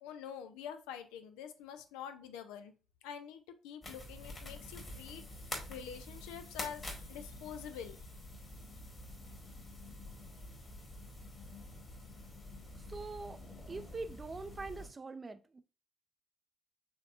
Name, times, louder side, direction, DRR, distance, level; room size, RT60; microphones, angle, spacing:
voice 1, 0.0-2.7 3.0-5.2 5.7-8.0, left 8 dB, 70° left, 0.4 m, -46 dB
sound 1, 3.8-14.9, left 1 dB, 35° left, 1.7 m, -47 dB
voice 2, 12.7-13.4 13.7-15.6, right 3 dB, 30° right, 0.4 m, -43 dB
4.5 x 3.5 x 2.4 m
figure-of-eight pair, 45°, 0 cm